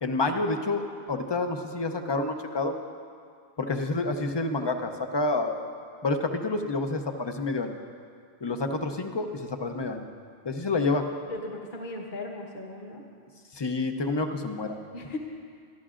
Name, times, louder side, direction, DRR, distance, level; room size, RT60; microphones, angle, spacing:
voice 1, 0.0-2.8 3.6-5.6 6.0-7.8 8.4-10.1 10.4-11.0 13.5-14.8, left 3 dB, 30° left, 6 dB, 0.6 m, -28 dB
voice 2, 11.3-13.0 14.9-15.2, left 2 dB, 50° left, 0 dB, 1.4 m, -37 dB
23.5 x 13.0 x 2.5 m, 2.3 s
omnidirectional pair, 1.1 m